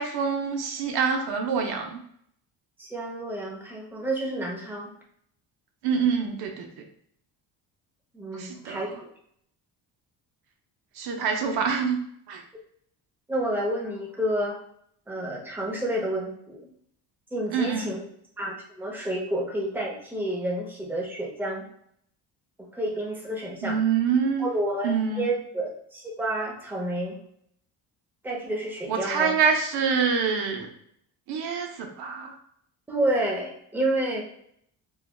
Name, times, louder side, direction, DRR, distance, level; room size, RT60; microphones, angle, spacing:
voice 1, 0.0-2.0 5.8-6.7 8.4-8.8 11.0-12.0 12.3-12.4 17.5-17.9 23.6-24.5 24.8-25.3 28.9-30.7 31.3-32.4, right 6 dB, 70° right, 4 dB, 0.6 m, -25 dB
voice 2, 2.8-4.9 8.1-8.9 11.4-11.6 13.3-14.6 15.1-16.7 17.3-18.0 18.4-21.7 22.6-23.8 24.4-27.2 28.2-29.3 32.9-34.2, right 1 dB, 5° right, -2 dB, 0.7 m, -29 dB
3.2 x 2.2 x 2.2 m, 0.68 s
cardioid pair, 120°, 39 cm